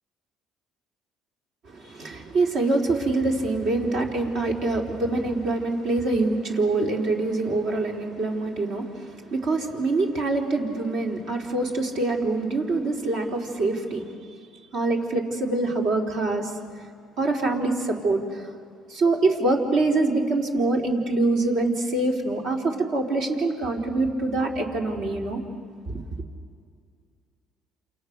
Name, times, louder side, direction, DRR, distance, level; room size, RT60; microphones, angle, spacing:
voice 1, 1.7-14.1 14.7-16.5 17.2-18.4 18.9-25.4 25.9-26.0, right 2 dB, 65° right, 1 dB, 3.9 m, -25 dB
29.0 x 28.0 x 6.7 m, 2.2 s
cardioid pair, 100°, 0 cm